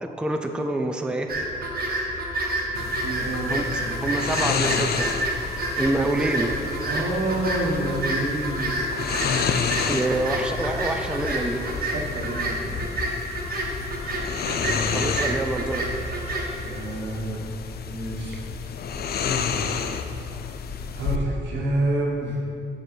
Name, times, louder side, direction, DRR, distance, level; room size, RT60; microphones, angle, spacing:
voice 1, 0.0-1.4 3.5-3.6 4.0-5.1 5.4-6.5 9.9-11.6 14.5-15.9, right 2 dB, 5° right, 5 dB, 0.4 m, -27 dB
sound 1, 1.3-16.5, right 1 dB, 55° right, 1.1 m, -29 dB
sound 2, 2.7-21.2, left 6 dB, 60° left, 0.4 m, -30 dB
voice 2, 3.0-4.0 6.6-9.3 9.7-10.2 11.6-12.6 14.9-15.0 16.6-17.4 17.9-18.4 21.0-22.4, right 1 dB, 85° right, -1 dB, 1.2 m, -29 dB
7.0 x 4.8 x 4.4 m, 2.6 s
cardioid pair, 100°, 18 cm